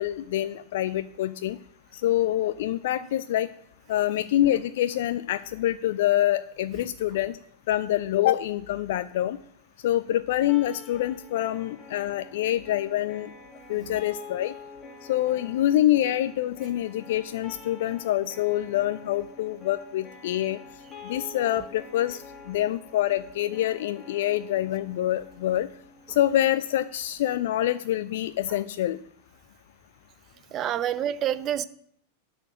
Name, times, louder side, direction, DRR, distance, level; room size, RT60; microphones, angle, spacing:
voice 1, 0.0-1.6 1.9-3.5 3.9-7.4 7.7-9.4 9.8-13.3 13.7-14.5 15.1-20.6 21.0-25.7 26.1-29.0, left 13 dB, 55° left, 0.4 m, -26 dB
sound 1, 10.5-26.5, left 4 dB, 20° left, 2.4 m, -47 dB
voice 2, 30.5-31.7, right 10 dB, 30° right, 0.6 m, -27 dB
11.5 x 5.0 x 6.3 m
figure-of-eight pair, 90°, 0 cm